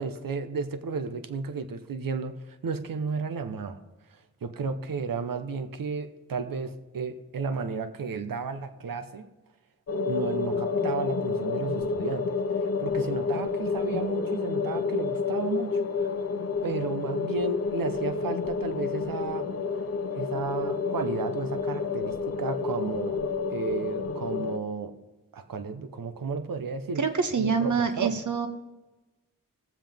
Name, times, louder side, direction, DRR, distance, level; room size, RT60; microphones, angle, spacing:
voice 1, 0.0-3.8 4.1-9.3 10.1-16.1 16.6-19.6 20.1-23.2 23.5-24.9 25.3-27.0 27.4-28.2, right 4 dB, 90° right, 9 dB, 0.9 m, -33 dB
sound 1, 9.9-24.6, left 4 dB, 50° left, 0.7 m, -29 dB
voice 2, 27.0-28.5, right 5 dB, 65° right, 6 dB, 1.3 m, -26 dB
18.0 x 7.5 x 3.5 m, 1.1 s
cardioid pair, 50°, 33 cm